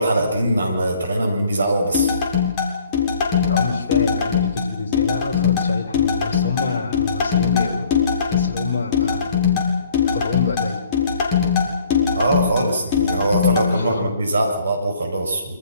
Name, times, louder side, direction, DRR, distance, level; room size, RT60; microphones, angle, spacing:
voice 1, 0.0-2.1 12.1-15.6, right 1 dB, 75° right, 4 dB, 7.5 m, -21 dB
sound 1, 1.9-13.7, left 7 dB, 35° left, 7.7 m, -20 dB
voice 2, 3.5-7.9 8.2-9.3 10.0-10.8 13.7-14.2, left 4 dB, 60° left, 3 dB, 4.8 m, -28 dB
29.0 x 27.0 x 6.1 m, 0.96 s
figure-of-eight pair, 130°, 0 cm